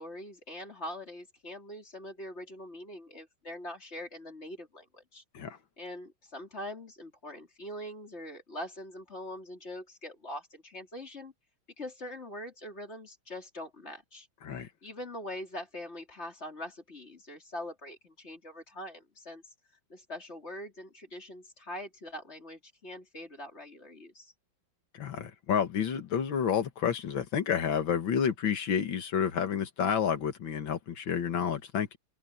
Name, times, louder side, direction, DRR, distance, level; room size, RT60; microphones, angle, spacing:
voice 1, 0.0-5.2 5.8-11.3 11.8-14.3 14.8-19.4 19.9-24.3, left 1 dB, 30° left, 3.6 m, -43 dB
voice 2, 24.9-32.0, left 8 dB, 75° left, 2.3 m, -30 dB
omnidirectional pair, 2.2 m